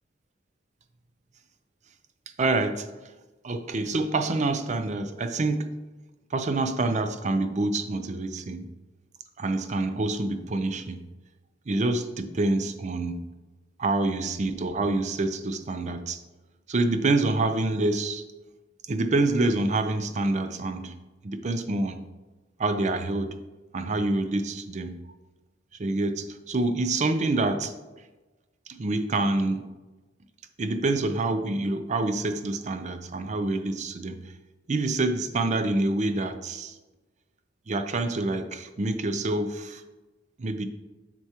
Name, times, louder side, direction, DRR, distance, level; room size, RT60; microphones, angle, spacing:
voice 1, 2.4-2.9 3.4-5.7 6.3-8.7 9.4-11.0 11.7-13.2 13.8-16.2 16.7-18.2 18.9-20.9 21.2-22.0 22.6-23.4 23.7-25.0 25.8-27.7 28.7-29.7 30.6-34.2 34.7-36.8 37.7-39.8 40.4-40.7, right 2 dB, 40° right, 9 dB, 0.5 m, -27 dB
8.0 x 6.0 x 2.9 m, 1.2 s
head